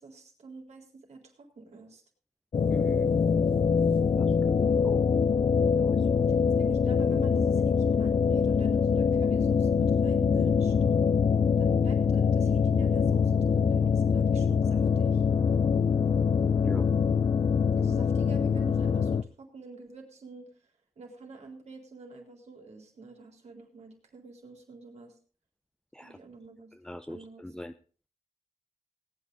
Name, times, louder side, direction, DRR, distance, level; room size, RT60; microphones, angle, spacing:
voice 1, 0.0-2.0 6.6-10.7 11.6-15.2 17.8-20.5 21.0-25.1 26.0-26.7 27.1-27.5, right 3 dB, 75° right, 2 dB, 3.9 m, -47 dB
sound 1, 2.5-19.2, left 6 dB, 50° left, 0.6 m, -24 dB
voice 2, 2.7-3.1 4.1-5.0 5.8-6.4 16.6-16.9 25.9-26.2 26.8-27.7, left 1 dB, 5° left, 8 dB, 0.6 m, -40 dB
19.0 x 9.4 x 3.9 m, 0.40 s
wide cardioid pair, 90°, 12 cm